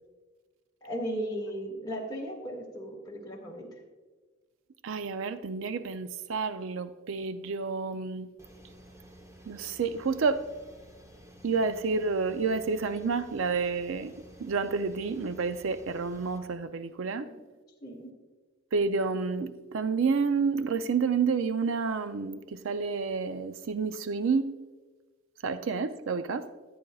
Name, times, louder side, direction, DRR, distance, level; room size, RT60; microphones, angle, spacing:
voice 1, 0.8-3.7 17.2-17.4 17.8-18.1, equal, 20° left, -3 dB, 1.9 m, -36 dB
voice 2, 4.8-8.3 9.5-10.4 11.4-14.1 14.4-17.3 18.7-24.6 25.4-26.5, right 4 dB, 65° right, 11 dB, 0.4 m, -29 dB
sound 1, 8.4-16.4, right 1 dB, 15° right, 0.9 m, -52 dB
15.0 x 8.8 x 2.3 m, 1.3 s
head